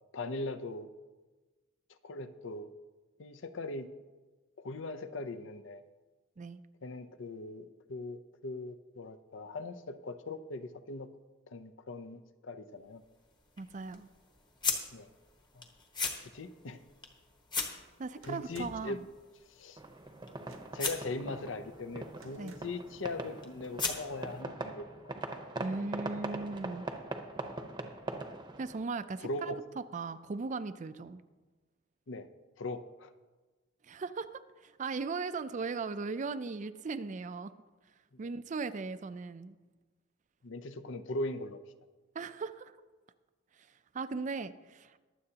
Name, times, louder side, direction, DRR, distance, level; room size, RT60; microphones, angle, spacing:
voice 1, 0.1-0.9 2.0-2.7 3.2-3.9 4.6-5.8 6.8-11.1 11.5-13.0 14.9-15.1 15.5-15.7 16.2-16.8 18.3-19.0 19.5-19.8 20.7-25.1 29.2-29.6 32.1-32.3 32.6-33.1 38.1-38.3 40.4-41.6, left 2 dB, 65° left, 11 dB, 0.6 m, -40 dB
sound 1, 12.8-24.4, left 4 dB, 20° left, 1.2 m, -41 dB
voice 2, 13.6-14.1 18.0-19.0 22.4-22.5 25.6-26.9 28.6-29.5 29.9-31.2 33.8-37.5 38.2-39.6 42.1-42.7 43.9-45.0, right 4 dB, 40° right, 12 dB, 0.4 m, -38 dB
sound 2, 18.2-19.0 20.4-20.9 22.2-22.9, right 3 dB, 80° right, 1.0 m, -54 dB
sound 3, 19.8-28.9, right 2 dB, 20° right, 0.8 m, -42 dB
22.5 x 7.8 x 2.9 m, 1.3 s
head